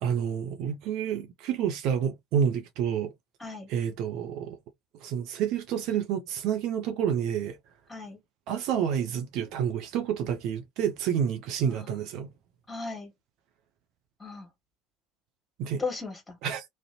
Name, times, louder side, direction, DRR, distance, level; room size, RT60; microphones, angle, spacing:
voice 1, 0.0-3.1 3.7-4.6 5.0-7.6 8.5-12.3 15.6-15.8 16.4-16.6, right 8 dB, 55° right, 0.5 m, -29 dB
voice 2, 12.7-13.1 14.2-14.5 15.8-16.4, left 4 dB, 15° left, 1.2 m, -36 dB
2.5 x 2.1 x 2.8 m
figure-of-eight pair, 65°, 0 cm